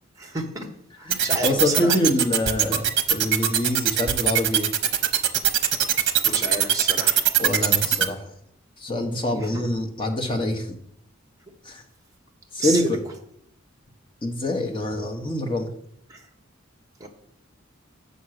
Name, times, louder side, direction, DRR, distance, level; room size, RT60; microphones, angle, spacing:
voice 1, 0.2-0.6 1.2-1.9 6.2-7.2 9.3-9.6 12.6-12.8 17.0-17.1, right 2 dB, 15° right, 4 dB, 1.1 m, -30 dB
voice 2, 1.0-4.7 6.0-6.1 7.4-8.2 8.8-10.7 11.6-11.8 12.5-13.0 14.2-15.7, left 1 dB, 25° left, 3 dB, 1.1 m, -25 dB
sound 1, 1.1-8.0, right 9 dB, 55° right, 0.8 m, -20 dB
7.3 x 5.3 x 6.5 m, 0.73 s
head